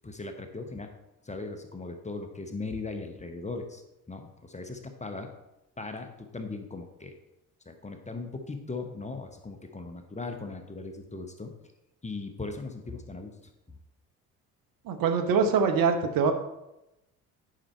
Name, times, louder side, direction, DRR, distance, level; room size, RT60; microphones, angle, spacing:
voice 1, 0.0-0.9 1.2-3.8 4.1-5.3 5.8-7.1 7.7-11.5 12.0-13.5, left 3 dB, 15° left, 6 dB, 1.1 m, -38 dB
voice 2, 14.9-16.3, right 5 dB, 50° right, 6 dB, 1.0 m, -24 dB
10.5 x 5.6 x 4.4 m, 0.93 s
figure-of-eight pair, 50°, 43 cm